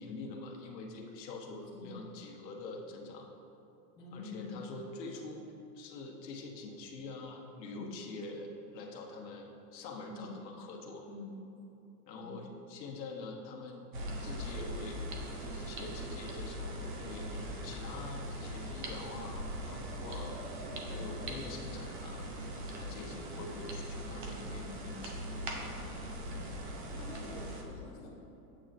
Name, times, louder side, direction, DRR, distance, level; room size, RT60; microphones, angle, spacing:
voice 1, 0.0-3.3 4.1-5.4 5.7-11.0 12.1-13.8 14.2-15.0 15.4-20.3 20.9-22.3 22.7-25.3, left 3 dB, 80° left, 0 dB, 1.3 m, -45 dB
voice 2, 4.0-4.5 7.7-7.9 10.1-10.3 11.1-11.3 12.1-12.4 20.8-21.0 23.0-23.5 24.2-24.9 26.3-26.6 26.9-28.2, left 4 dB, 10° left, -8 dB, 0.6 m, -48 dB
sound 1, 13.9-27.6, equal, 30° right, 0.6 m, -40 dB
8.8 x 7.9 x 2.6 m, 3.0 s
supercardioid pair, 170°, 49 cm